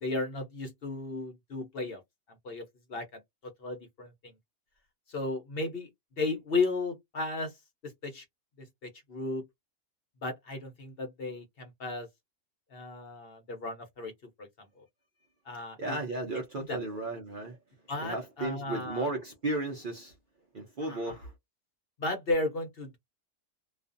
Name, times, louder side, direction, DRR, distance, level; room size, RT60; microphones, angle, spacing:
voice 1, 0.0-2.0 2.4-3.2 3.6-4.3 5.1-5.9 6.2-7.5 7.8-8.2 8.6-9.5 10.2-12.1 12.7-14.1 14.4-14.5 14.8-14.9 15.5-16.0 16.7-16.8 17.9-19.1 20.9-21.0 22.0-23.0, left 3 dB, 50° left, 0.9 m, -34 dB
voice 2, 15.8-17.6 18.0-20.1 20.5-21.3, right 2 dB, 50° right, 0.7 m, -34 dB
2.4 x 2.4 x 2.4 m
omnidirectional pair, 1.4 m